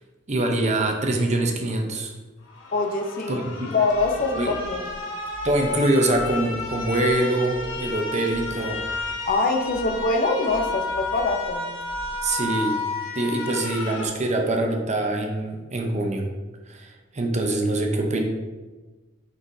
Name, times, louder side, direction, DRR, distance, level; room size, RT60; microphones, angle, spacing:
voice 1, 0.3-2.1 3.3-3.7 4.4-4.5 5.4-8.8 12.2-12.8 13.1-16.2 16.7-18.3, right 2 dB, 35° right, 3 dB, 0.7 m, -24 dB
sound 1, 2.5-14.1, left 3 dB, 85° left, 1.1 m, -32 dB
voice 2, 2.7-4.9 9.3-11.7, left 3 dB, 45° left, 4 dB, 0.7 m, -24 dB
sound 2, 3.9-12.5, equal, 20° left, 1.2 m, -43 dB
6.3 x 5.6 x 2.7 m, 1.2 s
head